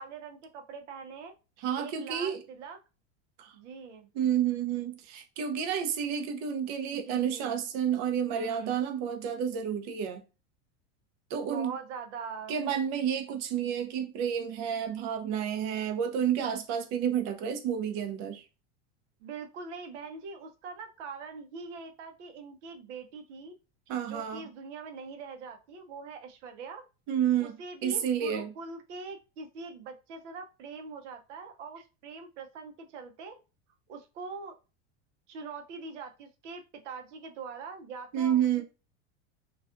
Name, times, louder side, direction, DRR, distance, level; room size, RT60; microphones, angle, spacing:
voice 1, 0.0-1.3 1.8-2.8 3.5-4.1 6.9-7.6 8.3-8.8 11.4-12.6 19.2-23.5 24.1-26.8 27.4-33.4 33.9-34.6 35.3-38.6, right 4 dB, 85° right, 0.7 m, -43 dB
voice 2, 1.6-2.4 3.4-3.5 4.1-10.2 11.3-11.7 12.5-18.4 23.9-24.4 27.1-27.5 27.8-28.5 38.1-38.6, right 8 dB, 50° right, 0.6 m, -30 dB
2.4 x 2.3 x 2.5 m
supercardioid pair, 135°, 35 cm